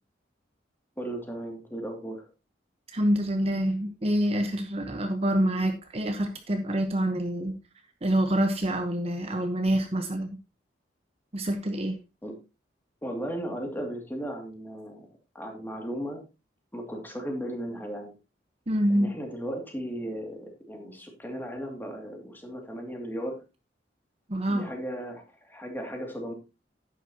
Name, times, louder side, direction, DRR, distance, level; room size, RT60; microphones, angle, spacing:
voice 1, 1.0-2.3 12.2-12.3 13.0-15.1 15.3-16.2 16.7-18.1 18.9-23.4 24.5-26.3, equal, 10° left, 2 dB, 2.4 m, -36 dB
voice 2, 2.9-7.6 8.0-10.4 11.3-12.0 18.7-19.1 24.3-24.7, right 1 dB, 35° right, 6 dB, 1.0 m, -26 dB
11.0 x 9.1 x 2.8 m, 0.28 s
head